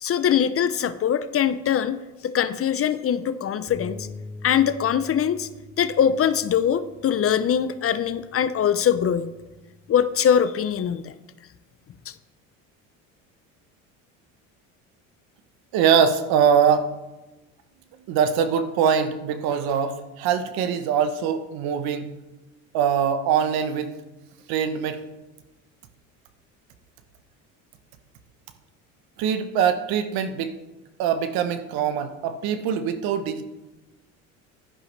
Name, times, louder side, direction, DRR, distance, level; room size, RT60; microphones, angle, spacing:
voice 1, 0.0-4.1 4.4-5.5 5.8-9.3 9.9-11.1 12.1-12.2, left 8 dB, 35° left, 13 dB, 0.6 m, -22 dB
Bass guitar, 3.7-9.9, left 1 dB, 5° left, 2.9 m, -44 dB
voice 2, 15.7-16.9 18.1-22.1 22.7-23.9 24.5-25.0 29.2-30.5 31.0-33.5, right 7 dB, 65° right, 10 dB, 1.1 m, -23 dB
11.0 x 10.5 x 3.3 m, 1.1 s
supercardioid pair, 80°, 39 cm